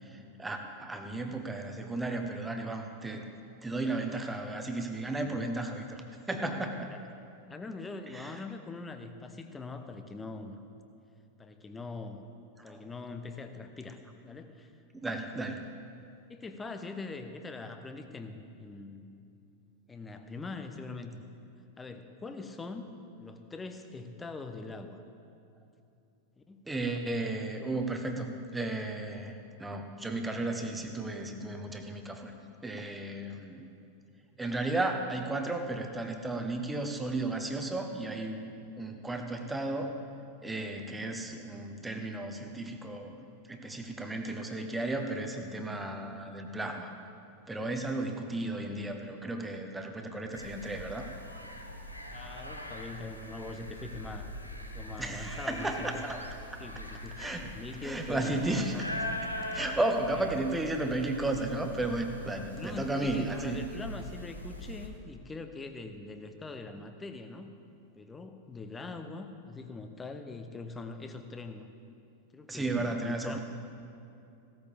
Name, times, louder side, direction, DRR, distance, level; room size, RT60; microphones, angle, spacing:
voice 1, 0.1-3.3 3.6-6.9 8.1-8.3 12.6-12.8 15.0-15.7 26.7-32.3 32.6-33.6 34.4-38.5 38.8-39.9 40.4-46.9 47.5-51.1 55.0-56.2 56.5-56.6 57.2-57.5 57.8-58.9 59.5-63.6 72.5-73.4, right 2 dB, 10° right, 5 dB, 1.2 m, -34 dB
voice 2, 5.2-5.7 6.9-7.0 7.5-10.6 11.4-12.2 12.6-14.7 15.0-15.2 16.3-19.1 19.9-21.2 21.8-22.9 23.2-25.0 26.4-26.9 52.1-54.3 54.7-56.0 56.6-58.4 60.2-60.4 62.6-67.5 68.0-71.7 72.3-73.4, left 3 dB, 15° left, 7 dB, 0.9 m, -43 dB
sound 1, 50.3-64.9, left 1 dB, 90° left, 1.1 m, -42 dB
17.0 x 13.5 x 3.5 m, 2.6 s
figure-of-eight pair, 90°, 0 cm